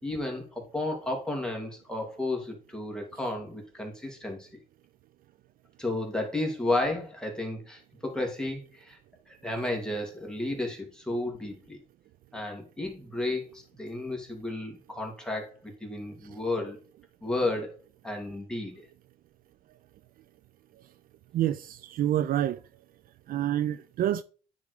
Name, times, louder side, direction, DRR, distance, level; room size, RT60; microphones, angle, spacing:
voice 1, 0.0-4.5 5.8-9.0 9.3-11.8 12.3-16.8 17.2-17.7 18.0-18.9, left 2 dB, 5° left, 2.6 m, -32 dB
voice 2, 21.3-22.6 23.3-24.2, right 12 dB, 60° right, 0.4 m, -27 dB
9.5 x 3.7 x 4.8 m
cardioid pair, 110°, 17 cm